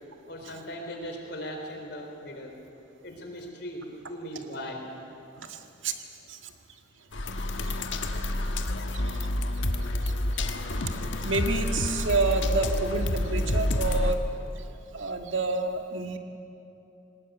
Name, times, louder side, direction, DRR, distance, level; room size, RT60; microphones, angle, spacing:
voice 1, 0.3-2.6 3.0-4.8, equal, 60° left, 2 dB, 3.8 m, -38 dB
voice 2, 5.4-5.9 6.3-6.4 7.6-7.8 8.2-8.3 9.1-9.2 10.0-10.4 10.8-14.2 14.9-16.2, right 3 dB, 90° right, 5 dB, 1.7 m, -29 dB
sound 1, 7.1-14.1, left 1 dB, 75° left, 1.4 m, -28 dB
19.5 x 19.0 x 9.1 m, 2.8 s
head